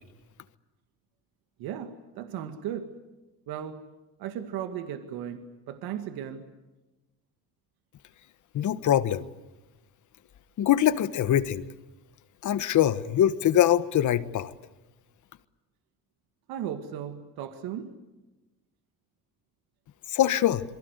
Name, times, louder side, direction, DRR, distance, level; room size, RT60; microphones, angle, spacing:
voice 1, 1.6-2.9 3.5-3.8 4.2-6.4 16.5-18.0, right 9 dB, 90° right, 7 dB, 2.1 m, -36 dB
voice 2, 8.5-9.2 10.6-11.6 12.4-14.5 20.1-20.6, left 11 dB, 55° left, 14 dB, 1.4 m, -23 dB
27.0 x 23.5 x 8.1 m, 1.1 s
cardioid pair, 120°, 35 cm